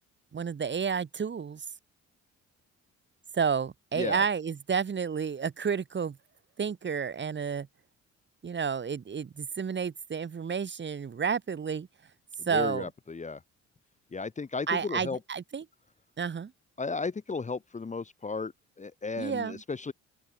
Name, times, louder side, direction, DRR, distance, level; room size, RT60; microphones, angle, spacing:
voice 1, 0.3-1.6 3.3-6.2 6.6-7.7 8.4-11.9 12.5-12.9 14.7-15.6 16.2-16.5 19.2-19.6, right 6 dB, 40° right, 1.7 m, -30 dB
voice 2, 12.4-13.4 14.1-15.2 16.8-19.9, left 4 dB, 25° left, 1.1 m, -34 dB
open air
cardioid pair, 90°, 30 cm